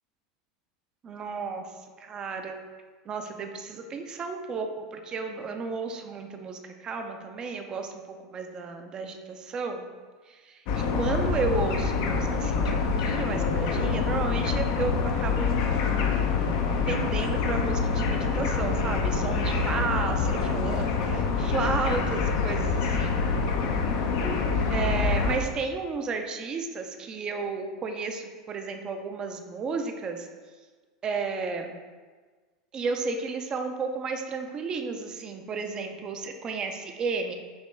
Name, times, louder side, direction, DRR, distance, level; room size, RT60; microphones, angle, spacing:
voice 1, 1.0-1.6 2.0-2.6 3.1-7.9 8.2-9.8 10.3-15.5 16.9-23.3 24.7-30.3 31.0-31.7 32.7-37.3, right 4 dB, 30° right, 5 dB, 0.5 m, -33 dB
sound 1, 10.7-25.4, left 4 dB, 60° left, 0.6 m, -26 dB
5.3 x 2.9 x 3.3 m, 1.4 s
hypercardioid pair, 100°, 3 cm